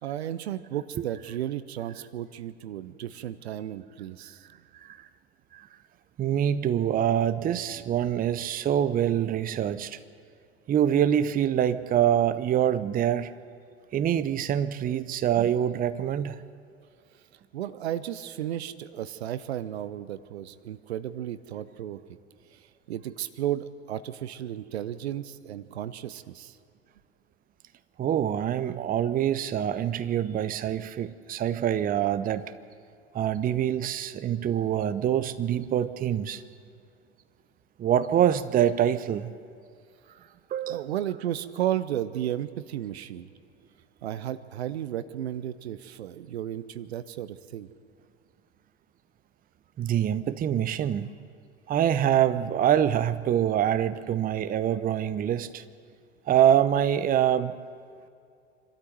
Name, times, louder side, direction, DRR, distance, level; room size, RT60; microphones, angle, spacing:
voice 1, 0.0-4.5 17.5-22.0 22.5-22.6 22.9-26.6 40.7-43.3 44.0-47.7, right 11 dB, 70° right, 13 dB, 0.9 m, -33 dB
voice 2, 6.2-10.0 10.7-13.3 13.9-16.4 28.0-32.5 33.1-36.4 37.8-39.3 40.5-40.9 49.8-51.1 51.7-55.6 56.3-57.6, right 10 dB, 25° right, 13 dB, 0.7 m, -25 dB
26.0 x 13.0 x 7.8 m, 2.4 s
figure-of-eight pair, 75°, 33 cm